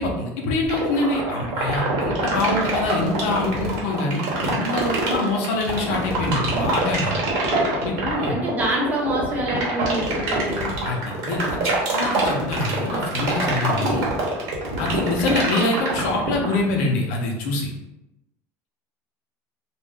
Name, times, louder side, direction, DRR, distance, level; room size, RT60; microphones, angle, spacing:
voice 1, 0.0-7.1 7.8-8.4 10.8-14.1 14.8-17.7, left 2 dB, 75° left, 0 dB, 0.6 m, -25 dB
sound 1, 0.7-16.6, right 3 dB, 60° right, 0.9 m, -24 dB
voice 2, 8.3-10.8, right 1 dB, 20° right, -2 dB, 0.7 m, -26 dB
2.4 x 2.0 x 3.4 m, 0.92 s
cardioid pair, 155°, 8 cm